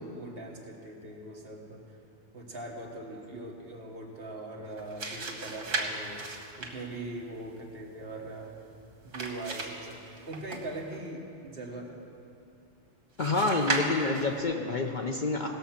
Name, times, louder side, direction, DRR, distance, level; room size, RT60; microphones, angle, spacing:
voice 1, 0.0-2.0 2.3-6.3 6.6-8.5 9.0-12.0, right 2 dB, 50° right, 0 dB, 1.5 m, -41 dB
sound 1, 4.7-11.0 13.2-14.4, right 3 dB, 90° right, 1.7 m, -37 dB
voice 2, 13.2-15.5, left 3 dB, 50° left, 2 dB, 0.7 m, -28 dB
17.5 x 7.0 x 5.8 m, 2.6 s
omnidirectional pair, 1.3 m